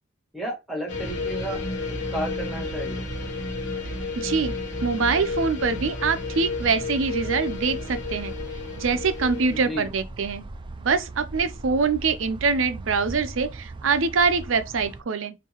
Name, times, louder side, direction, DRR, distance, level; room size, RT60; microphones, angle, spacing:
voice 1, 0.3-1.6 2.1-3.0 9.5-9.9, equal, ahead, 1.6 m, -32 dB
sound 1, 0.9-9.6, left 3 dB, 60° left, 1.0 m, -32 dB
sound 2, 0.9-15.0, right 3 dB, 25° right, 0.3 m, -40 dB
voice 2, 4.1-4.5 4.8-8.3 8.8-10.4 10.8-15.3, right 5 dB, 75° right, 0.6 m, -24 dB
5.4 x 2.7 x 2.9 m
head